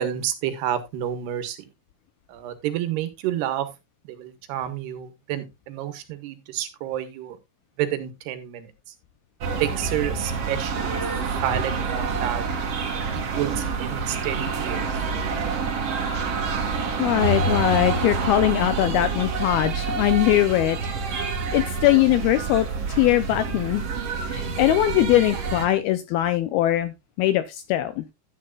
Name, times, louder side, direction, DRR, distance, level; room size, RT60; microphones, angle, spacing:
voice 1, 0.0-1.7 2.3-3.7 4.0-7.4 7.8-8.7 9.6-11.0 11.4-12.4 13.1-15.3, right 11 dB, 75° right, 3.0 m, -29 dB
sound 1, 9.4-25.7, right 4 dB, 50° right, 2.1 m, -27 dB
voice 2, 17.0-20.8 21.0-23.8 24.3-28.0, left 14 dB, 80° left, 2.3 m, -21 dB
12.5 x 9.2 x 2.4 m
omnidirectional pair, 5.0 m